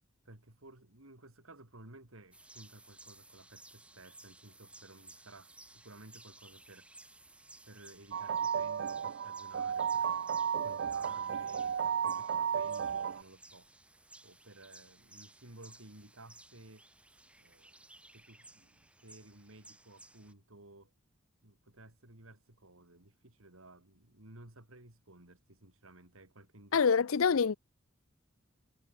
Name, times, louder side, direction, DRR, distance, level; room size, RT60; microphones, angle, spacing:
voice 1, 0.2-7.1 7.6-10.2 10.6-13.7 14.2-16.9 17.4-17.8 18.1-20.9 21.4-26.8 27.2-27.4, right 2 dB, 80° right, 3.9 m, -56 dB
sound 1, 2.3-20.3, right 2 dB, 5° right, 2.5 m, -58 dB
sound 2, 8.1-13.2, right 7 dB, 55° right, 0.3 m, -33 dB
voice 2, 26.7-27.6, left 6 dB, 80° left, 0.5 m, -26 dB
head